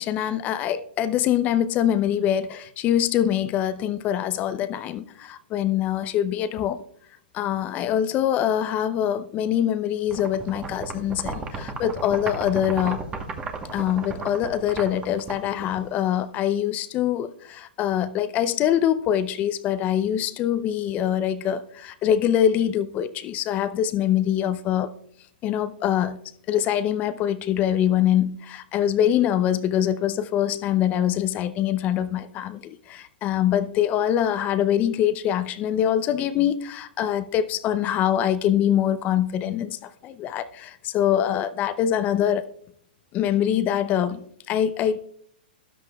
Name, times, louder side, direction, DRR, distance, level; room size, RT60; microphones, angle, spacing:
voice 1, 0.0-6.8 7.3-13.0 13.7-24.9 25.4-26.2 26.5-42.4 43.1-45.1, left 10 dB, 30° left, 0.5 m, -24 dB
sound 1, 10.1-16.2, right 4 dB, 20° right, 1.1 m, -35 dB
13.0 x 11.0 x 2.3 m
hypercardioid pair, 135°, 6 cm